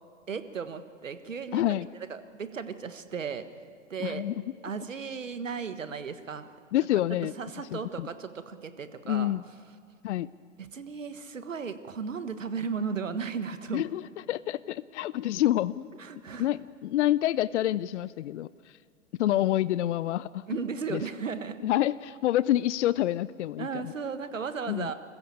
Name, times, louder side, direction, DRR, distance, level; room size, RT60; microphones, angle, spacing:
voice 1, 0.3-1.6 2.1-3.4 3.9-4.2 4.6-6.5 7.4-9.3 10.6-13.8 16.0-16.5 20.5-21.6 23.6-24.9, right 5 dB, 90° right, 11 dB, 1.5 m, -35 dB
voice 2, 1.5-1.9 4.0-4.3 6.7-7.3 7.7-8.1 9.1-9.4 10.0-10.3 13.7-14.0 14.3-15.9 16.4-18.5 19.2-20.4 20.9-21.0 21.6-23.9 24.7-24.9, left 13 dB, 65° left, 19 dB, 0.6 m, -27 dB
27.5 x 15.0 x 8.7 m, 2.1 s
hypercardioid pair, 105°, 37 cm